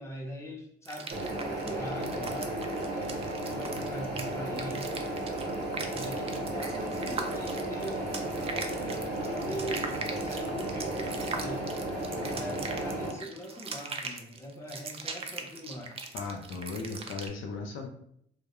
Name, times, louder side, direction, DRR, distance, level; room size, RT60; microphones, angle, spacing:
voice 1, 0.0-3.2 3.5-4.9 5.9-11.7 12.1-16.0, equal, 15° left, -1 dB, 0.7 m, -41 dB
sound 1, 0.8-17.3, right 4 dB, 30° right, 0.4 m, -40 dB
sound 2, 1.1-13.1, right 1 dB, 60° right, 0.8 m, -34 dB
voice 2, 16.1-17.9, left 4 dB, 80° left, 2 dB, 0.5 m, -37 dB
2.3 x 2.0 x 2.9 m, 0.69 s
cardioid pair, 90°, 20 cm